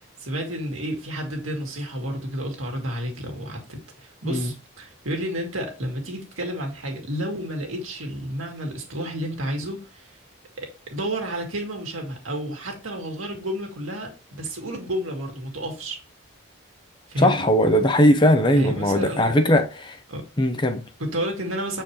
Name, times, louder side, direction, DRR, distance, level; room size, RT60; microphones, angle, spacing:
voice 1, 0.2-10.1 10.6-16.0 17.1-17.5 18.5-19.3 20.1-20.2 21.0-21.8, right 1 dB, 80° right, 1.9 m, -31 dB
voice 2, 17.2-20.0 20.4-20.8, equal, 20° left, 0.6 m, -19 dB
7.1 x 4.5 x 3.1 m
head